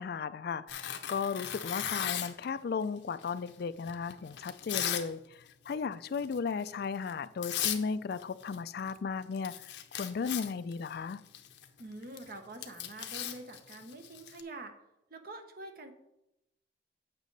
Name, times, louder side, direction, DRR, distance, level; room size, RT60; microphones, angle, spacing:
voice 1, 0.0-5.2 5.7-9.5 9.9-11.2, left 5 dB, 60° left, 14 dB, 0.4 m, -35 dB
Tearing, 0.7-2.5 3.2-5.1 5.4-5.7 6.1-6.4 7.1-7.2 7.4-7.8 8.1-9.0 9.2-14.4, left 10 dB, 75° left, 0.7 m, -37 dB
voice 2, 11.8-14.7 15.1-15.9, right 2 dB, 55° right, 6 dB, 1.0 m, -46 dB
8.2 x 6.1 x 4.0 m, 0.87 s
head